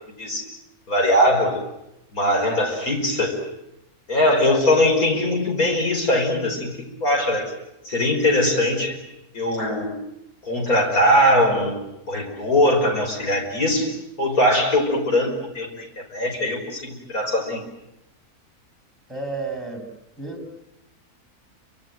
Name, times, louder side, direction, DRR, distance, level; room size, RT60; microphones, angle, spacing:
voice 1, 0.9-1.6 2.1-3.4 4.1-7.5 7.8-9.0 9.3-9.9 10.4-11.8 12.1-13.9 14.2-17.6, left 1 dB, 70° left, 2 dB, 6.0 m, -21 dB
voice 2, 19.1-19.9 20.2-20.6, right 3 dB, ahead, 6 dB, 7.2 m, -31 dB
29.5 x 25.5 x 7.7 m, 0.86 s
omnidirectional pair, 1.6 m